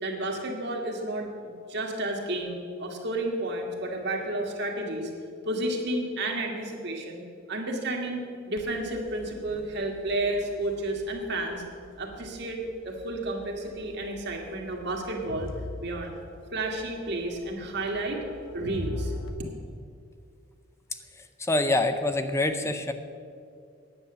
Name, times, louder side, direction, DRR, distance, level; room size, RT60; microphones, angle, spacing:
voice 1, 0.0-5.1 5.4-7.2 7.5-11.6 12.0-15.5 15.8-16.1 16.5-18.2 18.5-19.1, right 1 dB, 60° right, 1 dB, 1.7 m, -31 dB
Crowd, 8.6-19.3, left 1 dB, 75° left, 1.0 m, -42 dB
voice 2, 21.4-22.9, left 2 dB, 15° left, 8 dB, 0.6 m, -25 dB
9.5 x 9.0 x 6.8 m, 2.4 s
head